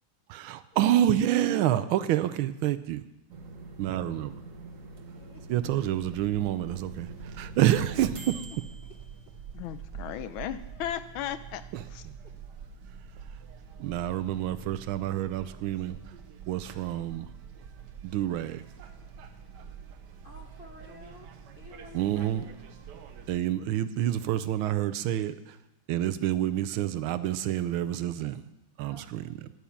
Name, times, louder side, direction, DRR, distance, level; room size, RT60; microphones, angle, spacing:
voice 1, 0.3-3.0 3.8-4.4 5.5-8.5 11.7-12.1 13.8-16.0 16.5-17.3 18.0-18.6 21.9-22.4 23.3-25.6 25.9-28.5 28.8-29.2, right 12 dB, 80° right, 1.4 m, -28 dB
sound 1, 3.3-9.7, right 3 dB, 45° right, 1.3 m, -44 dB
sound 2, 4.7-4.8 5.4-23.4, right 7 dB, 60° right, 1.4 m, -46 dB
voice 2, 9.5-11.6 11.9-12.0, left 10 dB, 80° left, 1.4 m, -36 dB
voice 3, 20.2-21.3 21.6-22.5 28.8-29.1, left 3 dB, 55° left, 0.6 m, -50 dB
10.0 x 9.2 x 7.1 m
omnidirectional pair, 2.3 m